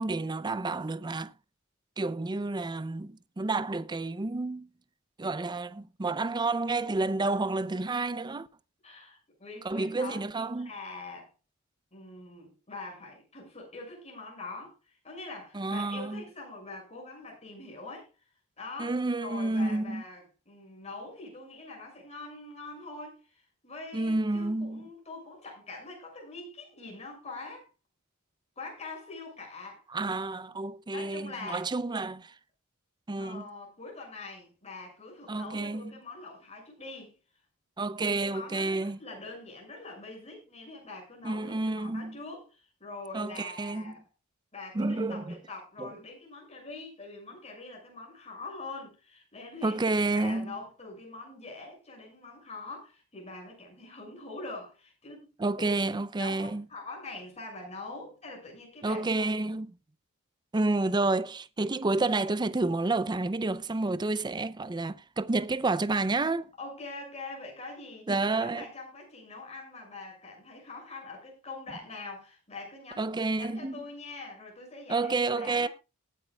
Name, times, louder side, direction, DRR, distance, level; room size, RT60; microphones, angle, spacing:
voice 1, 0.0-1.3 2.0-4.7 5.2-8.5 9.6-10.7 15.5-16.2 18.8-20.0 23.9-24.9 29.9-32.3 33.1-33.4 35.3-35.9 37.8-39.0 41.2-42.2 43.1-43.9 44.7-45.4 45.8-45.9 49.6-50.6 55.4-56.6 58.8-59.7 60.5-66.5 68.1-68.7 73.0-73.8 74.9-75.7, right 2 dB, 20° right, 0.5 m, -30 dB
voice 2, 8.8-11.3 11.9-18.1 18.6-27.7 28.6-29.8 30.5-30.6 30.9-31.7 33.2-37.2 38.0-44.0 44.5-55.3 55.6-55.8 56.2-59.3 66.6-73.1 73.4-75.7, left 3 dB, 30° left, 6.4 m, -44 dB
19.5 x 10.0 x 2.3 m
head